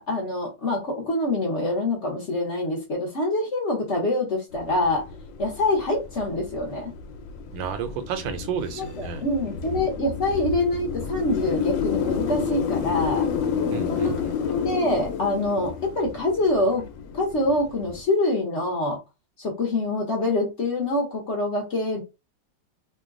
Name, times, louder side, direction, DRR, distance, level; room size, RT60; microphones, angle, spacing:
voice 1, 0.0-5.0 5.4-6.9 8.8-13.3 13.9-14.2 14.5-16.8 17.1-19.0 19.4-22.0, left 2 dB, 50° left, 1.0 m, -25 dB
sound 1, 4.5-18.0, left 6 dB, 80° left, 1.3 m, -30 dB
voice 2, 7.5-9.2 13.7-14.3, right 7 dB, 80° right, 1.3 m, -31 dB
3.1 x 2.2 x 3.6 m
omnidirectional pair, 2.0 m